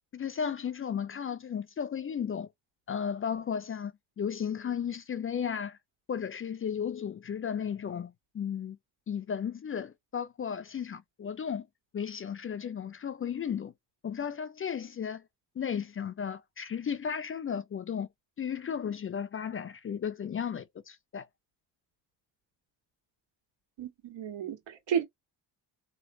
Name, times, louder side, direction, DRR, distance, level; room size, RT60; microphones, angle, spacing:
voice 1, 0.1-2.5 2.9-5.8 6.1-8.8 9.1-11.7 11.9-13.7 14.0-15.2 15.6-18.1 18.4-21.3, left 7 dB, 30° left, 0.4 m, -34 dB
voice 2, 23.8-25.0, right 8 dB, 80° right, 1.8 m, -32 dB
3.1 x 2.4 x 2.7 m
cardioid pair, 75°, 43 cm